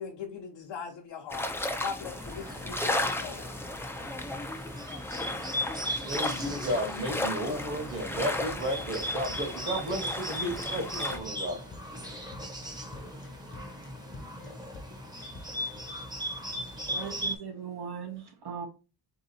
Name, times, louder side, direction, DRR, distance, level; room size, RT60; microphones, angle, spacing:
voice 1, 0.0-3.5, left 6 dB, 75° left, 0.8 m, -40 dB
sound 1, 1.3-11.2, left 1 dB, 5° left, 0.3 m, -35 dB
Bird, 2.1-17.4, equal, 10° right, 0.8 m, -38 dB
voice 2, 6.0-11.7, equal, 30° right, 1.1 m, -33 dB
sound 2, 9.1-15.9, left 2 dB, 30° left, 0.7 m, -49 dB
voice 3, 16.8-18.7, right 7 dB, 65° right, 0.8 m, -39 dB
3.6 x 2.8 x 4.0 m
wide cardioid pair, 155°, 43 cm